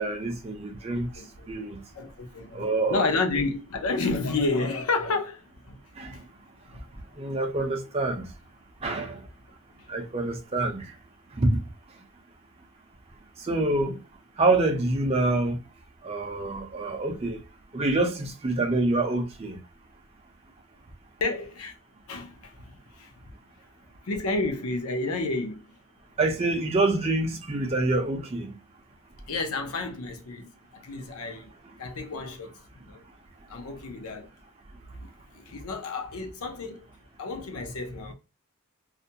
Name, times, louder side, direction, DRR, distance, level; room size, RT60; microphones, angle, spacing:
voice 1, 0.0-1.1 1.5-1.8 2.5-3.0 6.0-6.2 7.2-8.3 8.8-9.2 9.9-10.9 11.4-11.6 13.5-14.0 14.4-15.6 16.0-17.4 17.7-19.6 26.2-28.5, right 2 dB, 30° right, 0.4 m, -26 dB
voice 2, 0.9-1.5 1.9-6.2 6.7-6.8 7.2-7.3 21.2-21.7 22.1-23.1 24.0-25.7 29.3-31.5 31.8-32.5 32.9-33.0 33.5-34.3 35.0-36.9 37.2-38.1, left 3 dB, 85° left, 0.6 m, -31 dB
2.4 x 2.2 x 2.6 m
head